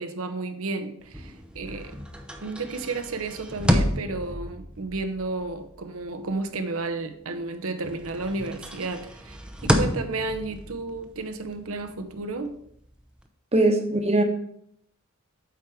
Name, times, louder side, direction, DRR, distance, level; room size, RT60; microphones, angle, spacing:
voice 1, 0.0-2.0 2.4-12.6, right 3 dB, 80° right, 7 dB, 0.8 m, -32 dB
sound 1, 1.0-7.5 7.8-13.2, equal, 5° right, 0.6 m, -31 dB
voice 2, 13.5-14.2, right 2 dB, 30° right, 4 dB, 1.0 m, -20 dB
8.1 x 4.6 x 4.9 m, 0.70 s
head